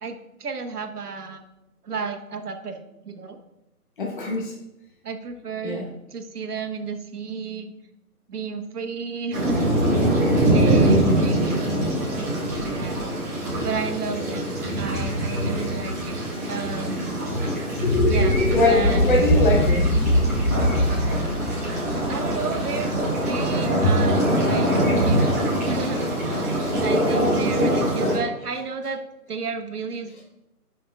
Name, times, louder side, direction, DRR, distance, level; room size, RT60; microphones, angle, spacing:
voice 1, 0.0-1.4 1.8-3.4 5.0-7.7 8.3-9.6 10.5-11.8 12.6-13.0 13.6-16.2 16.5-17.4 18.0-19.1 22.1-24.7 25.0-25.3 25.6-26.5 26.8-29.0 29.3-30.2, right 5 dB, 75° right, 6 dB, 1.2 m, -32 dB
voice 2, 4.0-4.5 5.6-5.9 10.4-10.9 15.0-15.5 17.3-17.4 17.7-17.9 18.5-21.2 21.7-21.8 23.8-23.9 25.1-25.2, left 1 dB, 35° left, -1 dB, 0.8 m, -25 dB
donder water, 9.3-28.2, right 1 dB, 10° right, 0.8 m, -24 dB
sound 1, 17.7-24.1, left 1 dB, 55° left, 1.0 m, -22 dB
11.0 x 5.4 x 2.3 m, 0.91 s
hypercardioid pair, 155°, 46 cm